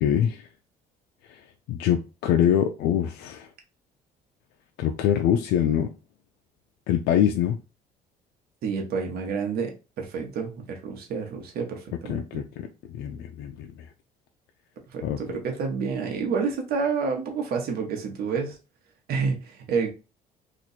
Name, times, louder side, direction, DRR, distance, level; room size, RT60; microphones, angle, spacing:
voice 1, 0.0-0.5 1.3-1.4 1.7-3.5 4.8-5.9 6.9-7.6 12.1-13.7 15.0-15.2, left 9 dB, 80° left, 0.4 m, -24 dB
voice 2, 8.6-12.2 14.9-18.6 19.1-19.9, right 5 dB, 65° right, 1.1 m, -29 dB
3.0 x 2.5 x 4.0 m
cardioid pair, 110°, 17 cm